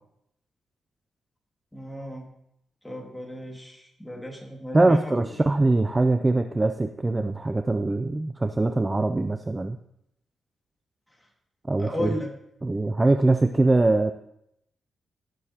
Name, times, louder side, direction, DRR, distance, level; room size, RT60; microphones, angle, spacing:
voice 1, 1.7-2.3 2.8-5.3 11.8-12.3, left 1 dB, 5° left, 0 dB, 2.1 m, -34 dB
voice 2, 4.7-9.8 11.7-12.1 12.6-14.1, right 2 dB, 20° right, 8 dB, 0.4 m, -22 dB
17.5 x 6.9 x 2.9 m, 0.77 s
wide cardioid pair, 125°, 0 cm